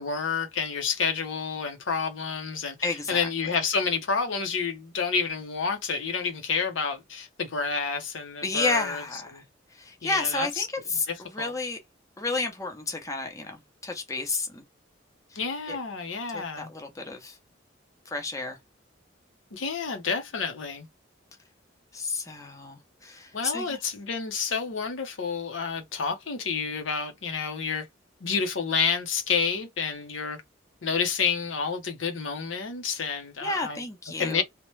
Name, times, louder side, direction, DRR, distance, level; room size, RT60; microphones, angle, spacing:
voice 1, 0.0-9.0 9.3-9.4 10.0-10.7 11.4-11.5 15.4-16.7 19.5-20.9 23.3-27.9 28.2-30.4 30.8-33.8 34.2-34.4, left 5 dB, 90° left, 0.8 m, -29 dB
voice 2, 2.8-3.2 8.4-9.4 9.7-11.1 11.3-11.8 12.2-14.6 15.7-15.8 16.3-17.4 18.1-18.6 21.9-23.8 33.4-34.4, left 3 dB, 15° left, 0.6 m, -31 dB
2.9 x 2.1 x 3.1 m
head